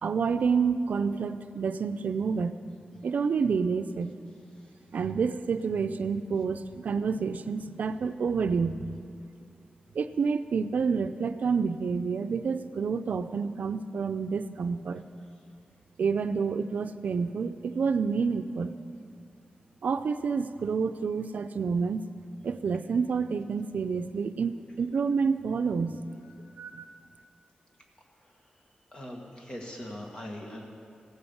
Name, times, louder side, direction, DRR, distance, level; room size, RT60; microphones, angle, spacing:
voice 1, 0.0-2.5 3.0-4.1 4.9-8.8 9.9-15.0 16.0-18.7 19.8-22.0 22.4-26.0 26.6-26.9, right 5 dB, 75° right, 10 dB, 0.5 m, -28 dB
voice 2, 26.2-26.6 28.2-28.5 28.9-30.7, left 1 dB, 30° left, 0 dB, 1.9 m, -42 dB
16.0 x 9.6 x 7.2 m, 2.4 s
wide cardioid pair, 145°, 3 cm